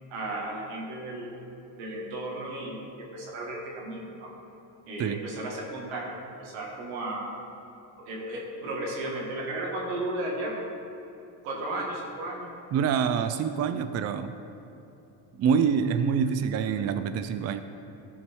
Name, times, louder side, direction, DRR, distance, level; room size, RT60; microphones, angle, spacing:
voice 1, 0.1-1.3 1.8-4.3 4.9-6.1 6.4-7.3 8.0-10.5 11.4-12.5, right 1 dB, 90° right, -2 dB, 2.1 m, -34 dB
voice 2, 12.7-14.3 15.4-17.6, right 7 dB, 35° right, 10 dB, 0.4 m, -26 dB
13.5 x 4.6 x 4.6 m, 2.9 s
cardioid pair, 105°, 45 cm